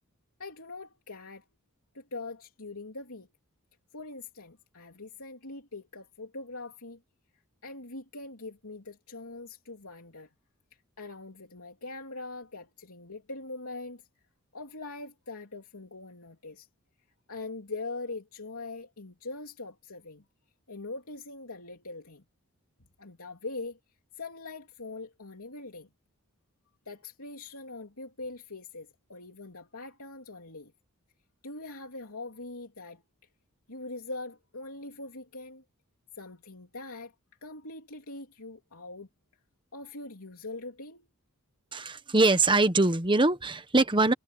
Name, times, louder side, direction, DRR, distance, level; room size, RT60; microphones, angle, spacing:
voice 1, 0.4-1.4 1.9-3.3 3.9-7.0 7.6-10.3 11.0-14.0 14.5-16.7 17.3-20.2 20.7-22.2 23.0-23.8 24.1-25.9 26.8-30.7 31.4-33.0 33.7-35.6 36.1-37.1 37.4-39.1 39.7-41.1, left 3 dB, 80° left, 3.2 m, -42 dB
voice 2, 41.7-44.1, right 2 dB, 20° right, 1.3 m, -23 dB
head